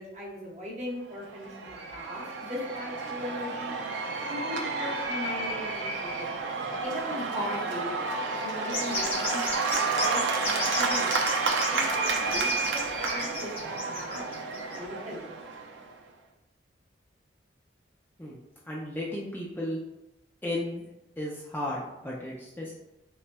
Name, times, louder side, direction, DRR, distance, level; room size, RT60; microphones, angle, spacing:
voice 1, 0.0-3.7 4.3-6.5 6.8-8.0 8.4-9.4 10.0-11.2 11.7-14.2 14.7-15.2, left 1 dB, 35° right, -3 dB, 0.9 m, -38 dB
Cheering / Applause / Crowd, 1.2-15.9, right 4 dB, 75° right, 0.4 m, -31 dB
sound 1, 8.7-14.8, left 2 dB, 30° left, 1.1 m, -34 dB
voice 2, 18.6-19.8 20.4-20.8 21.2-22.7, left 1 dB, 10° left, -4 dB, 0.4 m, -34 dB
5.4 x 2.1 x 2.2 m, 0.90 s
head